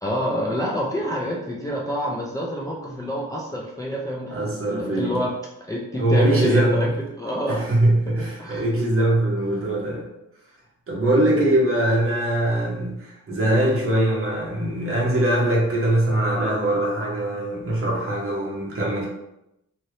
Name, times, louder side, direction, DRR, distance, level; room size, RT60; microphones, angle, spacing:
voice 1, 0.0-5.3 5.7-6.9 7.2-7.7 8.4-8.7 11.0-11.5, equal, 10° left, -4 dB, 0.3 m, -27 dB
voice 2, 4.3-5.2 6.0-6.8 7.5-10.1 10.9-19.1, right 1 dB, 45° right, -4 dB, 1.0 m, -22 dB
2.8 x 2.6 x 3.1 m, 0.86 s
wide cardioid pair, 155°, 30 cm